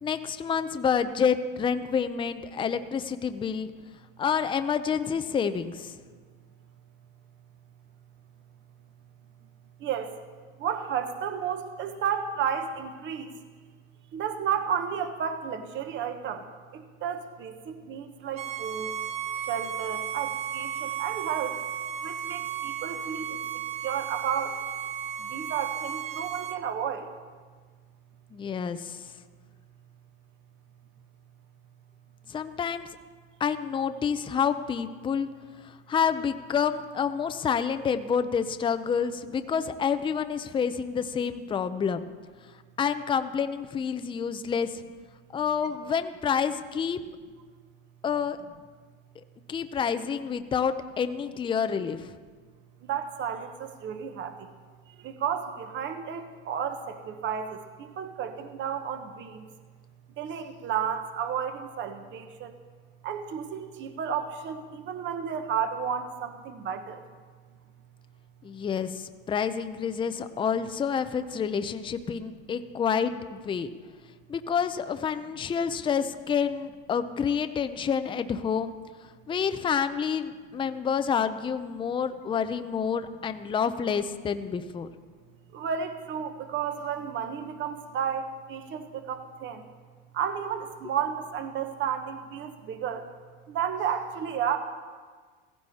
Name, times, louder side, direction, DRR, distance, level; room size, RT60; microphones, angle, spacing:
voice 1, 0.0-3.7 4.2-6.0 28.3-29.1 32.3-32.9 33.4-35.3 35.6-42.0 42.8-44.8 45.3-47.0 48.0-48.4 49.5-52.2 68.4-73.7 74.3-78.8 79.3-84.9, left 7 dB, 15° left, 10 dB, 0.6 m, -28 dB
voice 2, 10.6-13.3 14.1-16.4 16.7-18.9 19.5-21.6 22.0-23.4 23.8-24.6 25.2-27.1 52.8-54.4 55.0-59.4 60.2-62.6 63.0-67.0 85.5-89.6 90.1-93.0 93.5-94.6, right 8 dB, 40° right, 8 dB, 1.1 m, -32 dB
Bowed string instrument, 18.3-26.6, right 9 dB, 25° right, 0.8 m, -34 dB
15.5 x 15.5 x 4.2 m, 1.5 s
supercardioid pair, 120°, 30 cm